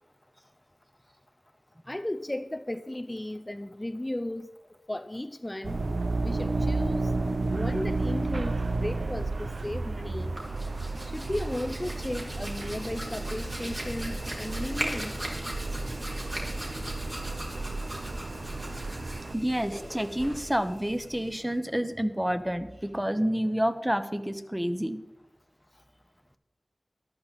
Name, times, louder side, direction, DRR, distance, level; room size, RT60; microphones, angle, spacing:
voice 1, 1.9-4.5 4.9-5.8 6.2-7.1 7.5-10.4 11.0-15.2, left 1 dB, 25° left, 0.5 m, -35 dB
sound 1, 5.6-19.4, right 3 dB, 80° right, 0.7 m, -32 dB
Hands, 10.2-21.6, right 1 dB, 45° right, 3.7 m, -38 dB
voice 2, 19.3-25.0, equal, 10° right, 1.1 m, -29 dB
14.0 x 11.5 x 4.3 m
wide cardioid pair, 45°, 0 cm